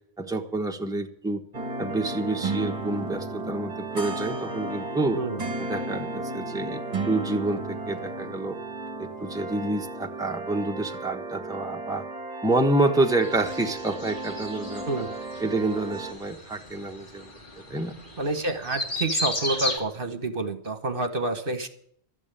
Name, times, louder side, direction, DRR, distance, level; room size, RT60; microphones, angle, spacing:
voice 1, 0.2-1.4 1.8-5.2 5.7-6.8 7.0-8.6 9.0-12.0 12.4-14.9 15.4-17.3 17.7-18.0, right 2 dB, 5° right, 3 dB, 1.2 m, -28 dB
sound 1, 1.5-16.1, right 2 dB, 35° right, 1.7 m, -34 dB
voice 2, 5.1-5.5 14.9-15.1 18.2-21.7, right 2 dB, 55° right, 9 dB, 1.4 m, -28 dB
sound 2, 13.2-19.8, left 1 dB, 50° left, 2.7 m, -35 dB
12.5 x 9.1 x 8.9 m, 0.66 s
omnidirectional pair, 1.1 m